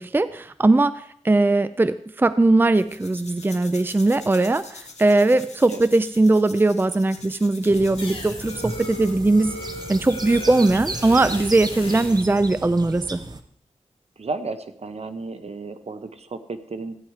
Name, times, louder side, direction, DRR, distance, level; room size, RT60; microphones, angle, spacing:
voice 1, 0.0-9.6 9.9-13.2, right 2 dB, 20° right, 14 dB, 0.4 m, -20 dB
sound 1, 2.7-9.2, left 4 dB, 75° left, 1.8 m, -44 dB
sound 2, 7.7-13.4, right 2 dB, 35° right, 1.0 m, -35 dB
sound 3, 8.0-12.3, left 1 dB, 50° left, 3.1 m, -37 dB
voice 2, 14.2-17.0, right 3 dB, 65° right, 10 dB, 1.0 m, -33 dB
14.5 x 9.3 x 4.8 m, 0.66 s
wide cardioid pair, 95°, 12 cm